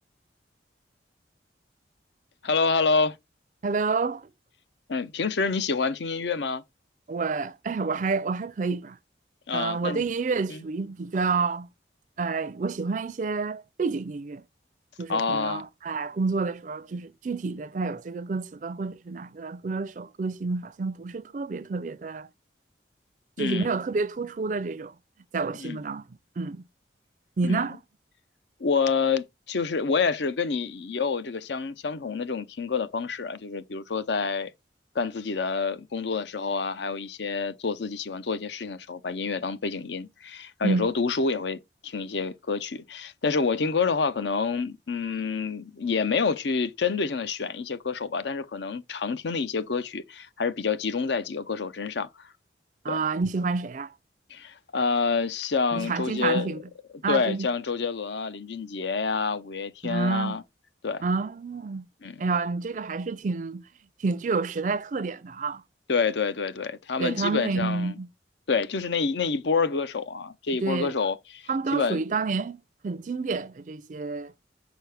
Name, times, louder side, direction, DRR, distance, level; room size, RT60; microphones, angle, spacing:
voice 1, 2.4-3.1 4.9-6.6 9.5-10.0 10.5-10.6 15.1-15.6 23.4-23.7 25.6-25.8 27.4-27.6 28.6-34.5 34.9-52.1 52.9-53.0 54.3-56.5 57.1-60.4 60.8-61.0 62.0-62.2 65.9-67.9 68.5-72.0, left 5 dB, 70° left, 0.6 m, -28 dB
voice 2, 3.6-4.3 7.1-9.0 9.5-11.7 12.2-14.5 15.0-22.3 23.4-24.9 25.3-26.6 27.4-27.8 40.6-40.9 52.8-53.9 55.7-56.6 57.0-57.5 59.8-60.4 61.0-61.9 62.2-63.6 64.0-65.6 67.0-68.1 70.6-70.9 71.5-74.3, right 4 dB, 45° right, 0.4 m, -29 dB
6.0 x 4.6 x 3.4 m
head